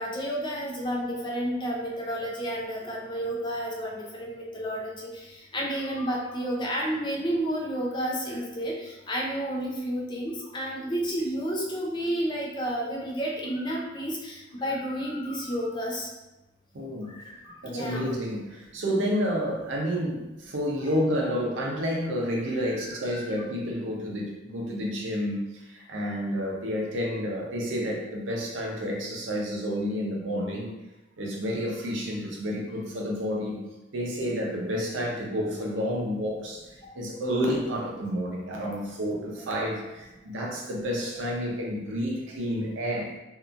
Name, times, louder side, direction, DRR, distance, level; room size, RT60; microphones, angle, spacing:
voice 1, 0.0-5.3 5.5-16.1 17.1-17.2 17.6-18.2 22.6-23.4 39.6-39.7 40.4-40.5 41.2-41.3, equal, 25° left, -3 dB, 0.5 m, -31 dB
voice 2, 16.7-17.2 17.6-30.7 31.2-33.6 33.9-36.6 36.9-43.1, equal, 90° right, -1 dB, 0.6 m, -30 dB
2.8 x 2.4 x 2.4 m, 1.0 s
head